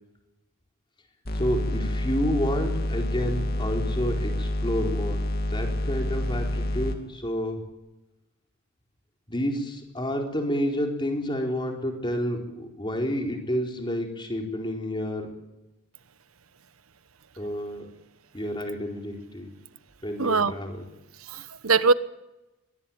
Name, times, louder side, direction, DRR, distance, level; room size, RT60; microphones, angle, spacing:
sound 1, 1.2-7.0, left 1 dB, 45° left, 2.7 m, -28 dB
voice 1, 1.3-5.2 5.5-7.6 9.3-15.3 17.4-17.9 18.3-19.5 20.0-20.8, equal, 20° left, 2 dB, 4.3 m, -29 dB
voice 2, 20.2-20.5 21.3-21.9, right 4 dB, 90° right, 14 dB, 1.1 m, -21 dB
23.0 x 19.0 x 9.2 m, 0.98 s
head